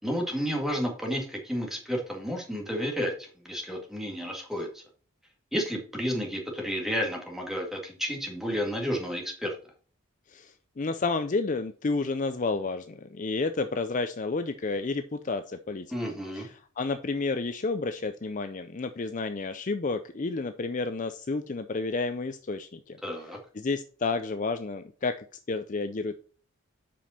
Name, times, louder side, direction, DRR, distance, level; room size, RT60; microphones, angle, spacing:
voice 1, 0.0-4.8 5.5-9.5 15.9-16.5 23.0-23.4, equal, ahead, 0 dB, 1.9 m, -31 dB
voice 2, 10.3-16.0 16.3-23.0 23.5-25.2 25.5-26.1, left 3 dB, 35° left, 9 dB, 0.4 m, -31 dB
7.6 x 5.3 x 4.2 m, 0.42 s
head